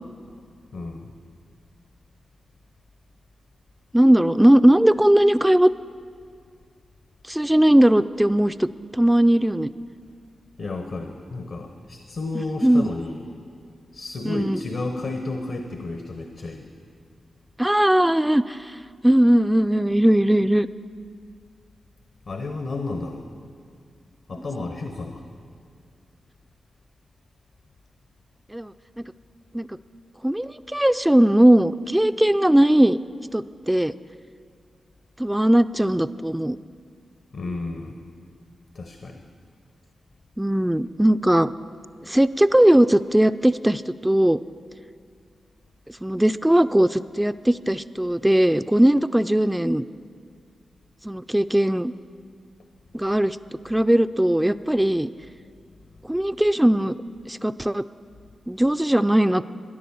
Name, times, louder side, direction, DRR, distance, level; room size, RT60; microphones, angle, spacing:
voice 1, 0.7-1.1 10.6-13.2 13.9-16.7 22.3-23.3 24.3-25.2 37.3-38.0 38.7-39.2, left 3 dB, 65° left, 5 dB, 0.9 m, -32 dB
voice 2, 3.9-5.7 7.3-8.7 8.9-9.7 12.3-12.9 14.3-14.6 17.6-18.8 19.0-20.7 24.6-24.7 28.5-28.7 29.5-29.7 30.2-33.0 33.3-33.9 35.2-36.6 40.4-41.5 42.1-44.4 46.0-49.8 51.0-51.9 52.9-53.4 53.6-55.1 56.1-56.9 57.3-57.8 58.5-59.4, right 1 dB, 10° right, 11 dB, 0.3 m, -19 dB
13.5 x 10.0 x 7.1 m, 2.2 s
supercardioid pair, 45°, 0 cm